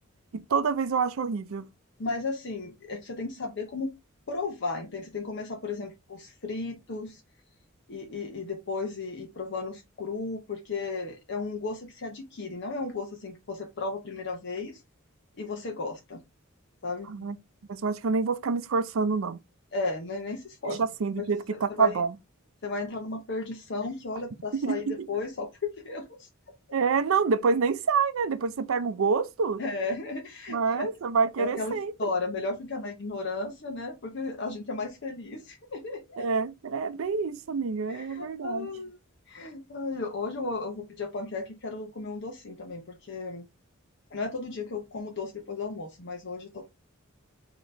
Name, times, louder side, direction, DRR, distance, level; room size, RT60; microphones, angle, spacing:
voice 1, 0.3-1.7 17.1-17.4 17.7-19.4 20.7-22.1 24.6-24.9 26.7-29.6 30.5-32.1 36.2-38.7, right 5 dB, 75° right, 0.5 m, -27 dB
voice 2, 2.0-3.9 4.3-7.2 7.9-14.8 15.4-16.2 16.8-17.3 19.7-20.8 21.2-21.3 21.5-22.0 22.6-26.3 29.6-30.9 31.4-36.2 37.9-38.9 39.3-43.5 44.1-46.7, left 3 dB, 60° left, 0.8 m, -34 dB
4.0 x 2.9 x 3.3 m
head